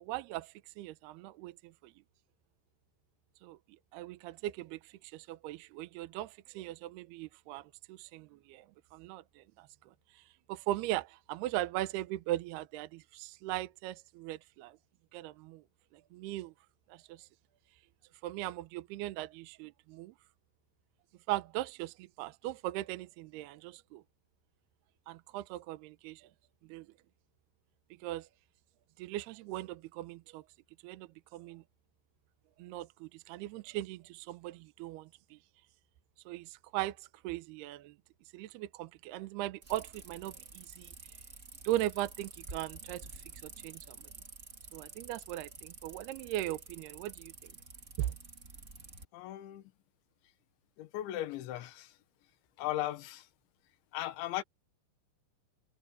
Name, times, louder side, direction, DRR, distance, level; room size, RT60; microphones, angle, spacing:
voice 1, 0.0-1.5 1.8-1.9 3.4-3.6 3.9-7.6 7.9-8.7 8.9-9.7 10.5-14.8 15.1-15.6 16.1-16.5 16.9-17.3 18.2-20.1 21.3-24.0 25.1-26.3 26.7-26.9 28.0-28.3 29.0-30.4 30.8-31.6 32.6-35.4 36.3-37.9 38.3-40.9 41.6-43.2 43.6-44.0 44.7-47.5 48.0-48.1, right 15 dB, 75° right, 2.5 m, -39 dB
sound 1, 39.6-49.0, right 3 dB, 40° right, 1.1 m, -50 dB
voice 2, 49.1-49.6 50.8-51.9 52.6-53.3 53.9-54.4, left 14 dB, 85° left, 3.7 m, -37 dB
omnidirectional pair, 5.2 m